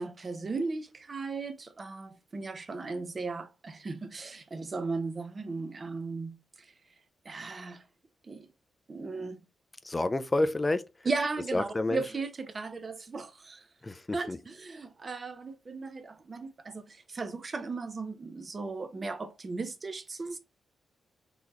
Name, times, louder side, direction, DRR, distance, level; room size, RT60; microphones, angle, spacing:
voice 1, 0.0-6.7 7.2-7.8 8.2-8.5 8.9-9.4 11.0-13.7 14.1-20.4, right 3 dB, 40° right, 0.6 m, -36 dB
voice 2, 9.8-10.8 11.5-12.0 13.8-14.4, left 2 dB, 25° left, 0.4 m, -29 dB
3.9 x 2.9 x 3.0 m
cardioid pair, 75°, 0 cm